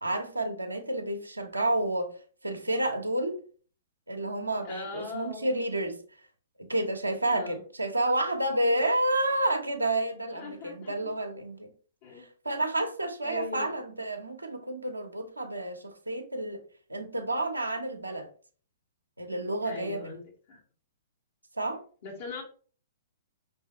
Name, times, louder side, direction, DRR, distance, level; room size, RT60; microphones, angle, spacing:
voice 1, 0.0-2.2 2.4-3.4 4.1-6.0 6.6-11.7 12.2-16.6 16.9-18.3 19.2-20.1 21.6-21.8, right 1 dB, 85° right, 0.8 m, -30 dB
voice 2, 4.6-5.6 7.3-7.6 10.3-11.1 12.0-12.3 13.2-13.9 19.6-20.6 22.0-22.4, left 4 dB, 50° left, 1.8 m, -41 dB
5.4 x 3.3 x 2.9 m
figure-of-eight pair, 110°, 0 cm